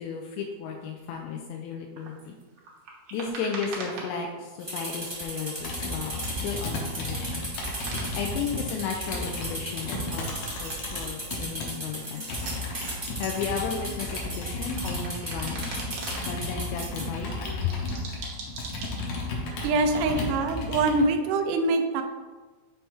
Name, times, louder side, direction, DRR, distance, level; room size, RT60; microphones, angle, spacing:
voice 1, 0.0-2.4 3.1-7.5 8.1-12.3 13.2-15.9 16.2-17.8, left 6 dB, 85° left, 1 dB, 2.4 m, -34 dB
sound 1, 2.0-4.6 4.8-7.2 7.5-8.5 8.8-11.3 11.7-13.4 13.7-16.4 16.8-19.2, right 3 dB, 65° right, 1.5 m, -41 dB
sound 2, 4.6-17.0, right 1 dB, 35° right, 0.4 m, -36 dB
Computer keyboard, 5.6-11.7 12.3-21.1, left 2 dB, 65° left, 1.8 m, -34 dB
voice 2, 19.6-22.0, right 3 dB, 85° right, 5 dB, 1.8 m, -24 dB
6.5 x 3.3 x 4.6 m, 1.3 s
omnidirectional pair, 4.3 m